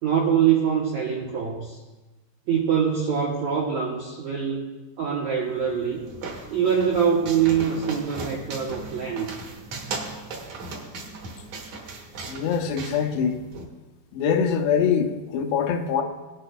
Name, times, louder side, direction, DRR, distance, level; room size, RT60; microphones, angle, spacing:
voice 1, 0.0-1.8 2.5-4.7 5.0-6.1 6.5-9.3, right 7 dB, 75° right, -3 dB, 1.6 m, -24 dB
sound 1, 5.5-13.6, right 3 dB, 55° right, 2.3 m, -37 dB
voice 2, 12.3-13.4 14.1-16.0, left 7 dB, 80° left, 5 dB, 2.8 m, -23 dB
18.0 x 10.5 x 2.3 m, 1.1 s
omnidirectional pair, 4.7 m